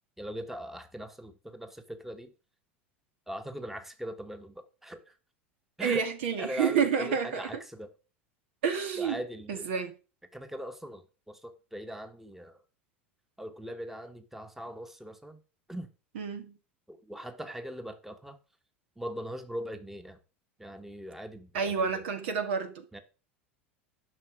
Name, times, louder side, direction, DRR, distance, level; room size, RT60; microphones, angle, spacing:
voice 1, 0.2-2.3 3.3-5.0 5.8-6.1 6.4-7.9 9.0-9.7 10.3-11.0 11.3-12.6 13.4-15.4 15.7-15.9 16.9-18.4 19.0-20.2 20.6-22.0 22.9-23.0, equal, 5° right, 1.4 m, -40 dB
voice 2, 5.8-7.5 8.6-9.2 9.5-9.9 16.1-16.6 21.5-22.8, right 6 dB, 65° right, 2.0 m, -29 dB
11.0 x 5.9 x 6.1 m
hypercardioid pair, 85°, 7 cm